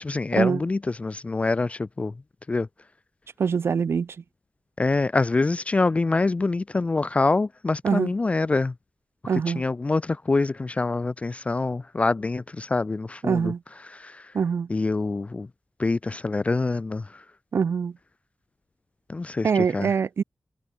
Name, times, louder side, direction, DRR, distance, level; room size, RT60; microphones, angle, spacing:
voice 1, 0.0-2.1 2.5-2.7 4.8-8.7 9.5-13.5 13.8-14.3 14.7-15.5 15.8-17.2 19.1-19.9, left 3 dB, 30° left, 0.3 m, -25 dB
voice 2, 3.4-4.2 7.8-8.1 9.3-9.6 13.2-13.6 14.3-14.7 17.5-17.9 19.4-20.2, right 6 dB, 80° right, 0.6 m, -23 dB
wide cardioid pair, 85°, 4 cm